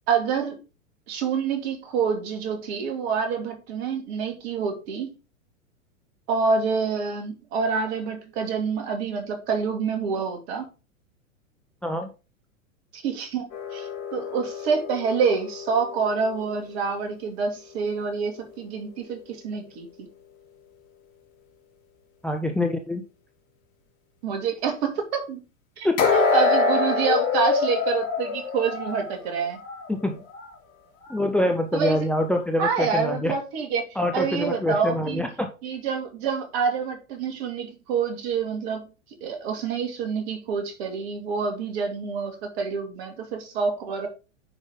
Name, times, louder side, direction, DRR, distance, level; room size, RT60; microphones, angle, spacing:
voice 1, 0.1-0.6 1.1-5.1 6.3-10.7 12.9-13.5 13.7-20.1 24.2-25.4 25.8-25.9 26.1-29.6 31.7-32.0 32.6-33.9 34.1-35.2 35.6-38.9 39.2-44.1, right 5 dB, 50° right, 2.6 m, -27 dB
sound 1, 13.5-16.6 26.0-29.9 30.3-30.5 31.1-31.2, left 4 dB, 40° left, 3.1 m, -26 dB
voice 2, 22.2-23.0 25.8-26.0 29.9-30.2 31.1-33.3 34.0-35.5, left 1 dB, 5° left, 0.8 m, -25 dB
9.7 x 5.0 x 3.7 m
figure-of-eight pair, 100°, 40 cm